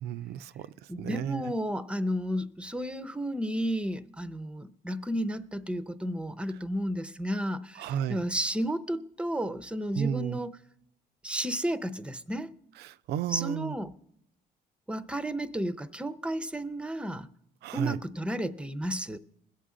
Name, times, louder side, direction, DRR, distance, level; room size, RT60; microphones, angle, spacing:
voice 1, 0.0-1.5 7.8-8.2 10.0-10.4 12.8-13.7 17.6-18.0, right 9 dB, 75° right, 0.5 m, -33 dB
voice 2, 0.9-10.6 11.2-12.5 13.3-13.9 14.9-17.3 17.7-19.2, equal, 5° right, 0.6 m, -32 dB
21.5 x 8.3 x 3.7 m
cardioid pair, 110°, 17 cm